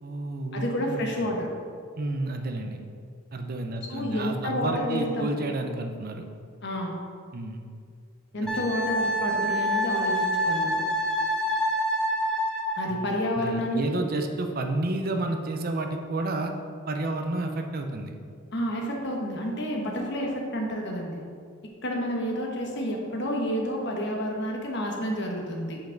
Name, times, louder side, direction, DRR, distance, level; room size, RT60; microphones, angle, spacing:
voice 1, 0.0-1.0 2.0-2.8 3.3-6.2 7.3-7.6 8.4-8.7 12.9-13.0 13.3-16.5 16.9-18.1, right 2 dB, 45° right, 5 dB, 0.6 m, -30 dB
voice 2, 0.5-1.5 3.9-5.5 6.6-7.0 8.3-10.8 12.8-14.0 18.5-21.2 21.8-25.8, equal, 55° left, 0 dB, 1.1 m, -29 dB
Wind instrument woodwind instrument, 8.5-12.9, equal, 5° left, 0.7 m, -26 dB
7.2 x 5.3 x 3.9 m, 2.2 s
head